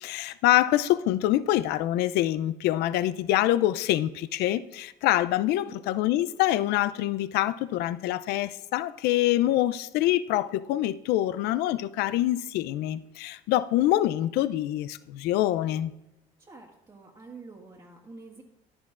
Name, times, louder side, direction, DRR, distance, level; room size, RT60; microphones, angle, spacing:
voice 1, 0.0-15.9, left 14 dB, 70° left, 0.4 m, -25 dB
voice 2, 16.4-18.4, right 3 dB, 25° right, 1.7 m, -47 dB
13.5 x 10.0 x 2.5 m
supercardioid pair, 80°, 17 cm